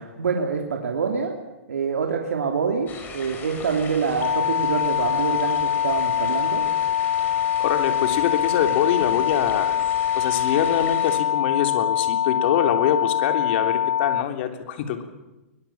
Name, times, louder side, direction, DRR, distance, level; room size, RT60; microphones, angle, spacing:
voice 1, 0.0-1.3 1.7-6.6, right 5 dB, 80° right, 2 dB, 3.1 m, -26 dB
sound 1, 2.9-11.2, left 4 dB, 25° left, 5.6 m, -39 dB
sound 2, 4.2-14.2, left 10 dB, 80° left, 0.8 m, -23 dB
voice 2, 7.6-9.8 10.1-15.0, left 9 dB, 50° left, 6 dB, 3.4 m, -24 dB
21.5 x 21.5 x 7.4 m, 1.0 s
hypercardioid pair, 135°, 8 cm